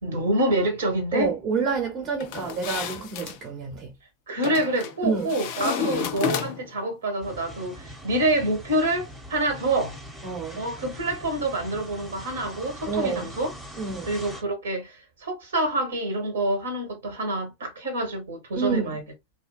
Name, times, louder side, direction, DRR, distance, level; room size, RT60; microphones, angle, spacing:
voice 1, 0.0-1.3 4.3-10.0 10.6-13.5 14.1-19.0, right 1 dB, 65° right, 1.1 m, -27 dB
voice 2, 1.1-3.9 5.0-5.4 5.8-6.2 10.2-10.6 12.8-13.3 13.8-14.1 18.6-19.0, right 5 dB, 30° right, 0.9 m, -29 dB
sound 1, 2.2-3.4 4.4-4.9 5.3-6.8, left 8 dB, 45° left, 0.4 m, -31 dB
sound 2, 7.2-14.4, right 1 dB, ahead, 0.9 m, -42 dB
2.7 x 2.1 x 2.2 m
figure-of-eight pair, 90°, 0 cm